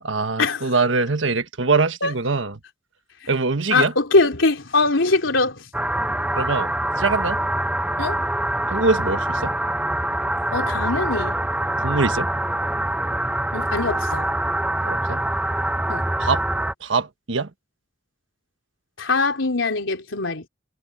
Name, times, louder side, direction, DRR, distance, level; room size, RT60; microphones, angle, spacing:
voice 1, 0.0-2.5 3.3-3.9 6.3-7.4 8.7-9.6 11.8-12.3 14.8-15.2 16.2-16.4 16.8-17.5, right 3 dB, 80° right, 1.4 m, -23 dB
voice 2, 3.7-5.7 8.0-8.2 10.5-11.4 13.5-14.3 15.9-16.1 19.0-20.5, left 3 dB, 90° left, 3.4 m, -22 dB
sound 1, 5.7-16.7, right 1 dB, 5° right, 0.7 m, -24 dB
head